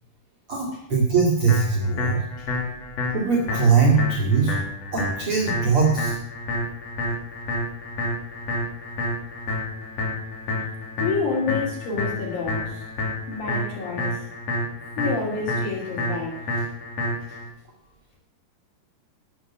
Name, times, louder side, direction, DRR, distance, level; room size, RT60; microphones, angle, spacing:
voice 1, 0.5-2.2 3.1-4.5 4.9-6.2, right 5 dB, 40° right, -4 dB, 2.7 m, -21 dB
sound 1, 1.5-17.5, left 2 dB, 40° left, 3.6 m, -29 dB
voice 2, 11.0-12.9 13.3-14.3 15.0-16.5, left 4 dB, 60° left, -1 dB, 4.3 m, -28 dB
12.0 x 7.9 x 7.4 m, 0.75 s
omnidirectional pair, 4.9 m